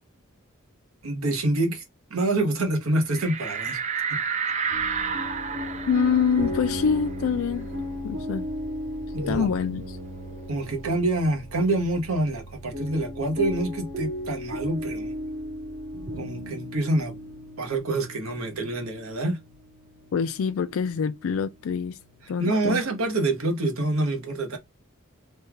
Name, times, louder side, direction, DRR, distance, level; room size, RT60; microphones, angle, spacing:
voice 1, 1.0-1.8 2.1-3.8 4.1-4.2 9.1-9.5 10.5-15.1 16.2-17.2 17.6-19.4 22.4-24.6, right 2 dB, 85° right, 1.1 m, -26 dB
sound 1, 3.1-8.3 8.7-8.8 9.1-10.7, right 6 dB, 35° right, 0.4 m, -32 dB
sound 2, 4.7-22.5, left 1 dB, 50° right, 0.9 m, -36 dB
voice 2, 5.9-7.7 8.0-8.5 9.3-10.0 20.1-22.0 22.3-22.8, left 6 dB, 75° left, 0.3 m, -25 dB
3.2 x 2.3 x 3.2 m
head